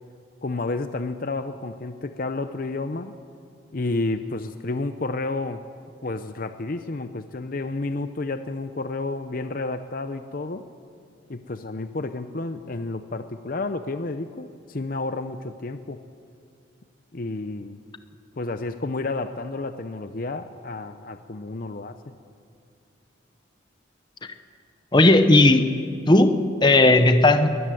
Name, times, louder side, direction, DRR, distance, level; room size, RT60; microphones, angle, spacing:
voice 1, 0.4-3.1 3.7-5.6 6.0-10.7 11.3-16.0 17.1-17.8 18.4-22.1, left 3 dB, 45° left, 10 dB, 0.6 m, -31 dB
voice 2, 24.9-25.7 26.1-27.5, left 2 dB, 25° left, 9 dB, 0.9 m, -16 dB
22.5 x 14.0 x 9.2 m, 2.3 s
head